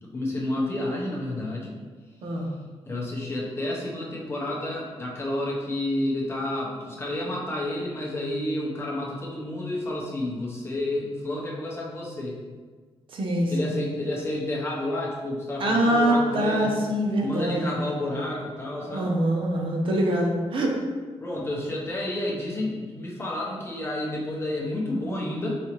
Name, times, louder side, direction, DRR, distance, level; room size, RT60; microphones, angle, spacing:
voice 1, 0.0-1.8 2.8-12.4 13.5-16.7 17.2-19.1 21.2-25.5, left 1 dB, 25° left, -4 dB, 0.7 m, -30 dB
voice 2, 2.2-2.5 13.1-13.8 15.6-17.7 18.8-20.7, right 1 dB, 55° right, 0 dB, 0.6 m, -24 dB
4.9 x 2.7 x 2.9 m, 1.5 s
wide cardioid pair, 150°, 11 cm